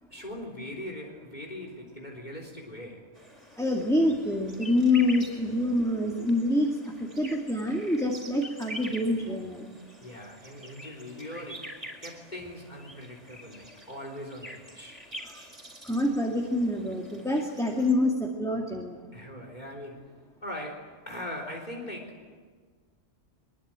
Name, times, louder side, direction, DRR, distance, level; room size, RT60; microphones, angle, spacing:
voice 1, 0.1-3.1 10.0-15.1 19.1-20.1 20.4-22.3, left 1 dB, 40° left, 1 dB, 3.9 m, -41 dB
sound 1, 3.1-17.9, equal, 30° right, 4.6 m, -46 dB
voice 2, 3.6-9.7 15.2-15.4 15.8-19.0, left 1 dB, 5° left, 0 dB, 2.4 m, -26 dB
23.5 x 22.5 x 9.0 m, 1.5 s
omnidirectional pair, 1.1 m